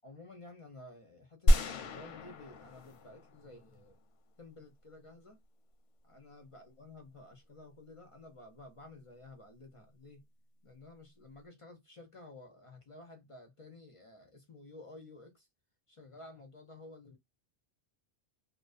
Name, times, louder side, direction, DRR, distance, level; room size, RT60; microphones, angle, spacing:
voice 1, 0.0-4.0 4.4-5.4 6.0-10.2 10.6-15.5 15.9-17.2, left 2 dB, 50° left, 0.4 m, -53 dB
sound 1, 1.5-3.8, equal, 90° left, 0.9 m, -29 dB
2.5 x 2.1 x 2.3 m
omnidirectional pair, 1.2 m